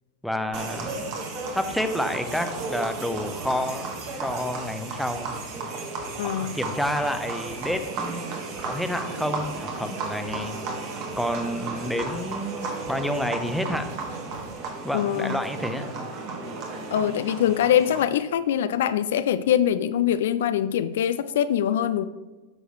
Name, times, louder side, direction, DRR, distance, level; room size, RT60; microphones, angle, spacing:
voice 1, 0.2-1.1 1.5-3.8 4.2-5.3 6.2-14.0 14.8-15.8, equal, ahead, 7 dB, 0.8 m, -29 dB
sound 1, 0.5-18.1, right 3 dB, 40° right, 1.7 m, -34 dB
sound 2, 0.8-14.5, right 2 dB, 60° right, 1.6 m, -45 dB
voice 2, 6.2-6.6 14.9-15.4 16.9-22.0, left 10 dB, 60° left, 12 dB, 0.4 m, -23 dB
13.0 x 6.3 x 3.2 m, 1.2 s
figure-of-eight pair, 90°, 0 cm